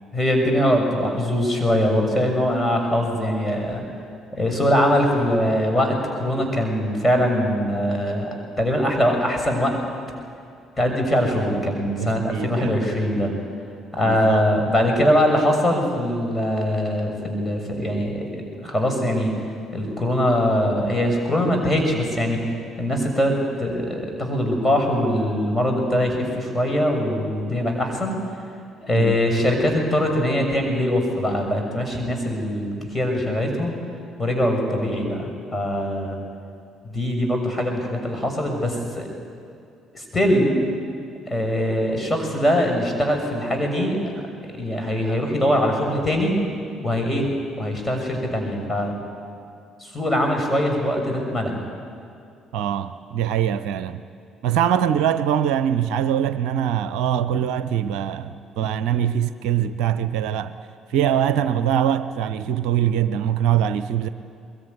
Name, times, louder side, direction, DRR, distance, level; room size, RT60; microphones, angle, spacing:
voice 1, 0.1-3.8 4.3-8.3 8.6-9.8 10.8-13.3 13.9-19.3 19.7-22.4 22.8-28.2 28.8-33.7 34.2-36.2 36.8-39.1 39.9-40.5 41.3-44.2 44.5-46.4 46.8-47.3 47.6-48.9 49.8-51.6, equal, 15° left, 2 dB, 6.6 m, -22 dB
voice 2, 12.0-12.8 14.0-14.4 28.9-29.2 52.5-54.0 54.4-60.5 60.9-64.1, right 9 dB, 65° right, 13 dB, 0.6 m, -23 dB
22.5 x 21.5 x 9.6 m, 2.4 s
figure-of-eight pair, 50°, 0 cm